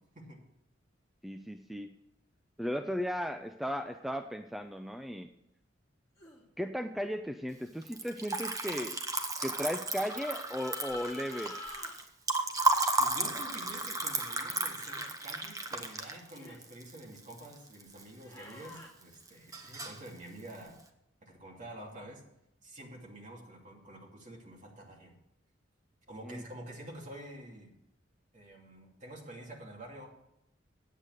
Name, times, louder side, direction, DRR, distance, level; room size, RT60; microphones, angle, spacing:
voice 1, 1.2-1.9 2.6-5.3 6.6-9.0 9.4-11.5 26.2-26.4, equal, ahead, 7 dB, 0.4 m, -36 dB
sound 1, 6.2-6.4 10.0-11.9 14.8-15.1 16.3-16.6 18.2-18.9, left 2 dB, 20° left, 2.4 m, -46 dB
Liquid, 7.8-18.0 18.4-19.0 19.3-20.1, right 2 dB, 20° right, 1.0 m, -33 dB
voice 2, 13.0-20.8 21.2-22.2 22.6-25.2 26.1-27.7 28.3-30.1, right 1 dB, 40° right, -1 dB, 2.6 m, -48 dB
8.8 x 8.3 x 6.4 m, 0.82 s
head